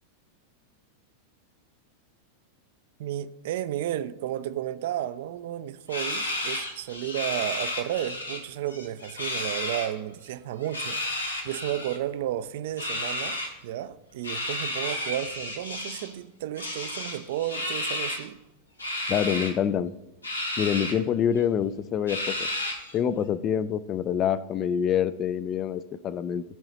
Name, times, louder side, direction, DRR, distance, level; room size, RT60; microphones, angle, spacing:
voice 1, 3.0-18.4, right 12 dB, 55° right, 0.4 m, -33 dB
sound 1, 5.9-8.4 8.7-9.9 10.6-12.0 12.8-13.5 14.2-16.1 16.6-18.3 18.8-19.5 20.2-20.9 21.4-21.5 22.1-23.0, left 1 dB, 80° left, 1.4 m, -32 dB
voice 2, 19.1-19.9 20.6-22.5 22.9-26.4, left 8 dB, 30° left, 0.4 m, -26 dB
13.5 x 4.9 x 4.1 m
figure-of-eight pair, 90°, 0 cm